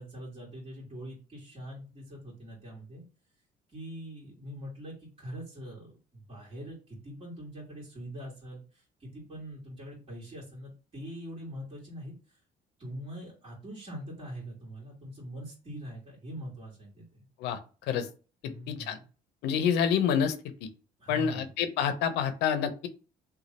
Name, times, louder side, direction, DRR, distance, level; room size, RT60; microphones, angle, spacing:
voice 1, 0.0-3.0 3.7-12.4 12.8-17.2 18.4-19.0 21.0-21.5, right 1 dB, 30° right, -5 dB, 1.7 m, -43 dB
voice 2, 18.4-19.0 19.4-20.4 20.6-20.7 21.1-22.9, left 8 dB, 85° left, 10 dB, 0.6 m, -28 dB
3.1 x 2.3 x 4.0 m, 0.35 s
cardioid pair, 110°, 17 cm